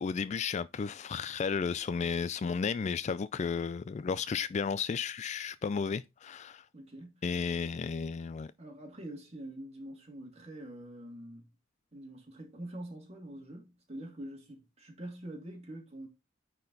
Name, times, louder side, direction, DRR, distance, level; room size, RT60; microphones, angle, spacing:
voice 1, 0.0-6.6 7.2-8.5, left 6 dB, 35° left, 0.3 m, -33 dB
voice 2, 6.7-7.2 7.5-7.6 8.6-11.5 11.9-16.1, right 1 dB, 35° right, 2.5 m, -45 dB
9.4 x 4.4 x 4.0 m
head